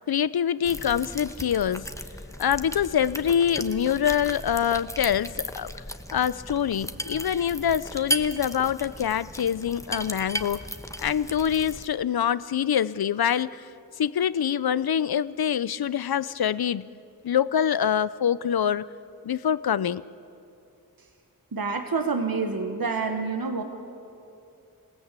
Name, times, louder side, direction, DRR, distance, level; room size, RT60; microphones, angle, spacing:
voice 1, 0.1-1.9 2.4-5.7 6.1-10.6 11.0-13.7 14.0-16.9 17.2-18.9 19.2-20.0, left 9 dB, 80° left, 18 dB, 0.5 m, -25 dB
sound 1, 0.6-11.9, left 1 dB, 10° left, 1.1 m, -36 dB
voice 2, 21.5-23.6, right 4 dB, 70° right, 6 dB, 1.3 m, -27 dB
27.0 x 17.5 x 8.2 m, 2.7 s
wide cardioid pair, 45°, 36 cm